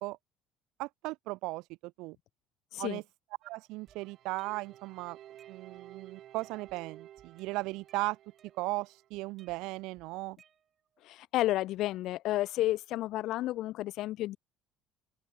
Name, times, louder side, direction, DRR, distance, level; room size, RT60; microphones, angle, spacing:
voice 1, 0.8-2.2 2.8-3.0 3.4-5.2 5.5-8.2 8.6-10.4, right 22 dB, 80° right, 0.9 m, -37 dB
sound 1, 3.4-4.8 5.2-6.0 6.4-6.8 7.2-9.0 9.4-11.0, right 8 dB, 35° right, 7.0 m, -64 dB
sound 2, 3.9-9.1, right 12 dB, 50° right, 5.0 m, -54 dB
voice 2, 11.0-14.4, left 15 dB, 65° left, 0.4 m, -31 dB
open air
cardioid pair, 135°, 0 cm